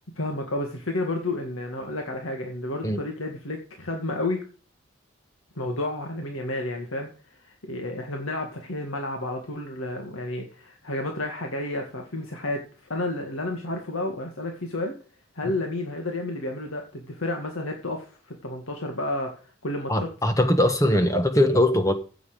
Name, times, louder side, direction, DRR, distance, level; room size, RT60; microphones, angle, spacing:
voice 1, 0.2-4.5 5.6-14.9 15.3-20.1, left 2 dB, 85° left, 2.1 m, -31 dB
voice 2, 19.9-21.9, left 1 dB, 15° left, 1.4 m, -21 dB
15.0 x 7.2 x 5.1 m
head